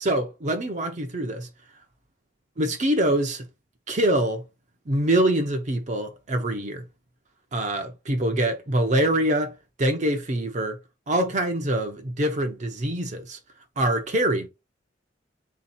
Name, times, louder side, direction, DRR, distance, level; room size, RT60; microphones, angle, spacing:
voice 1, 0.0-1.5 2.6-3.4 3.9-4.4 4.9-6.8 7.5-10.8 11.1-13.4 13.8-14.5, right 1 dB, 40° right, 0.7 m, -24 dB
3.9 x 2.8 x 4.0 m
head